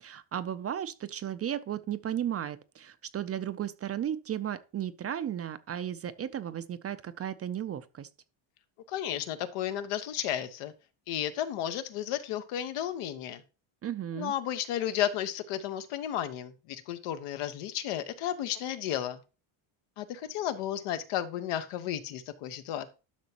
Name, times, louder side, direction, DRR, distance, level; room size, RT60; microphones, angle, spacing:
voice 1, 0.0-8.1 13.8-14.3, right 10 dB, 35° right, 0.4 m, -35 dB
voice 2, 8.9-10.7 11.1-13.4 14.1-19.2 20.0-22.9, left 11 dB, 90° left, 1.1 m, -33 dB
11.5 x 6.1 x 2.9 m
cardioid pair, 135°, 49 cm